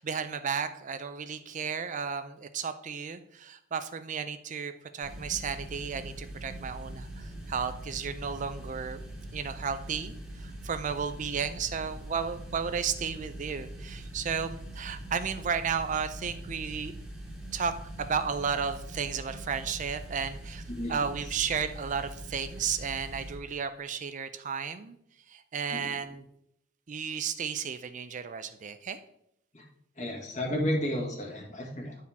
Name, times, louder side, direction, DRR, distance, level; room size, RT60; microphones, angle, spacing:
voice 1, 0.0-9.0 9.3-16.9 17.5-20.6 20.9-25.0 25.3-26.2 26.9-29.0, right 6 dB, 40° right, 10 dB, 0.4 m, -33 dB
sound 1, 5.0-23.4, right 1 dB, 5° right, 1.4 m, -42 dB
voice 2, 20.7-21.2 25.7-25.9 29.5-29.6 30.0-32.0, equal, 40° left, -1 dB, 1.8 m, -32 dB
10.0 x 4.7 x 3.5 m, 0.75 s
head